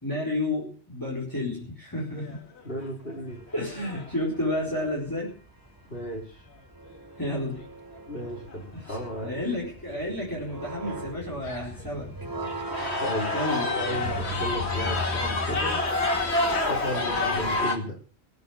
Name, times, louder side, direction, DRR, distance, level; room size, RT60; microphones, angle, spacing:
voice 1, 0.0-2.4 3.5-5.4 7.2-7.6 8.7-12.1 13.3-13.7, left 1 dB, 20° left, -3 dB, 4.5 m, -31 dB
sound 1, 2.1-2.6 3.1-3.2 3.5-4.1 7.3-7.4 8.5-8.6 8.9-9.2 9.7-9.8 10.5-10.6 10.8-11.0 11.4-11.9 12.4-17.8, left 3 dB, 75° left, 2.4 m, -29 dB
voice 2, 2.6-3.4 5.9-6.4 8.1-9.4 13.0-13.3 13.7-15.8 16.6-18.0, equal, 60° left, -1 dB, 5.1 m, -34 dB
sound 2, 3.4-17.7, equal, 20° right, 1.5 m, -37 dB
19.0 x 8.0 x 7.3 m, 0.40 s
omnidirectional pair, 1.1 m